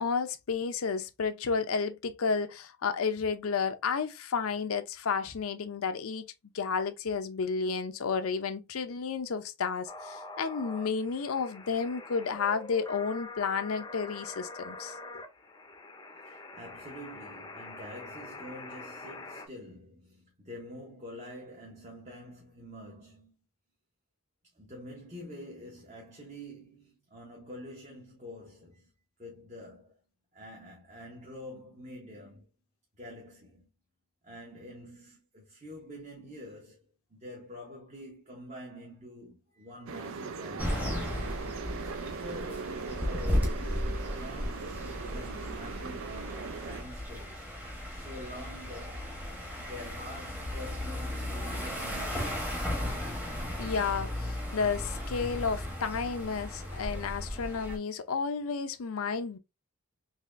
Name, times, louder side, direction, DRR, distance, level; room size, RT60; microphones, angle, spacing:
voice 1, 0.0-6.3 6.5-15.2 53.6-59.4, left 5 dB, 85° left, 0.5 m, -32 dB
sound 1, 9.9-19.5, left 2 dB, 20° left, 0.5 m, -45 dB
voice 2, 16.2-23.3 24.5-28.9 29.2-30.0 30.3-32.5 33.0-33.7 34.2-41.0 41.7-47.5 47.9-49.1 49.6-52.5, left 1 dB, 35° right, 0.8 m, -47 dB
sound 2, 39.9-46.8, right 5 dB, 75° right, 0.4 m, -40 dB
sound 3, 40.6-57.8, left 1 dB, 10° right, 0.9 m, -35 dB
4.1 x 3.0 x 2.4 m
head